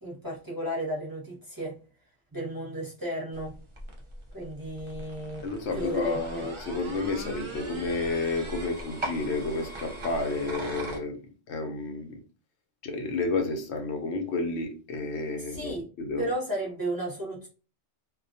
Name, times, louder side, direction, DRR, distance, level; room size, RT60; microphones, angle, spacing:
voice 1, 0.0-1.7 2.3-3.5 4.3-5.4 5.7-6.5 15.4-15.9 16.2-17.5, right 1 dB, 20° right, -6 dB, 0.8 m, -33 dB
sound 1, 3.3-11.0, right 1 dB, 40° right, 0.4 m, -40 dB
voice 2, 5.4-11.2 11.5-12.2 12.8-16.3, left 3 dB, 75° left, 4 dB, 0.8 m, -31 dB
2.3 x 2.2 x 2.5 m, 0.36 s
omnidirectional pair, 1.2 m